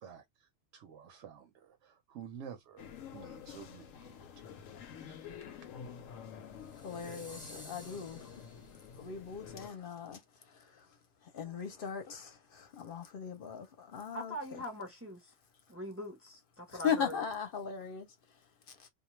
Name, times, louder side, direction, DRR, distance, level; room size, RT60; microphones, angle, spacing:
voice 1, 0.0-4.2 5.4-5.9, right 8 dB, 70° right, 0.9 m, -51 dB
sound 1, 2.8-9.7, left 7 dB, 80° left, 1.0 m, -49 dB
sound 2, 6.6-9.1, left 1 dB, 5° left, 0.9 m, -54 dB
voice 2, 6.7-14.6 16.7-18.9, left 7 dB, 50° left, 0.8 m, -39 dB
voice 3, 14.1-15.3 15.7-17.2, left 1 dB, 15° right, 0.5 m, -42 dB
2.3 x 2.1 x 3.0 m
omnidirectional pair, 1.3 m